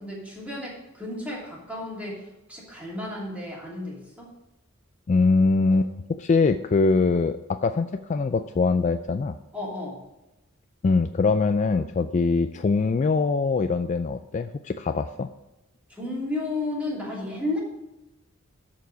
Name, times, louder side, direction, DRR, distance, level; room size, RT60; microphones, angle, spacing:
voice 1, 0.0-4.3 5.7-5.8 9.5-10.0 15.9-17.6, left 2 dB, 5° right, -4 dB, 2.8 m, -33 dB
voice 2, 5.1-5.9 6.2-9.3 10.8-15.3, left 4 dB, 35° left, 10 dB, 0.3 m, -23 dB
13.0 x 4.7 x 5.1 m, 0.99 s
head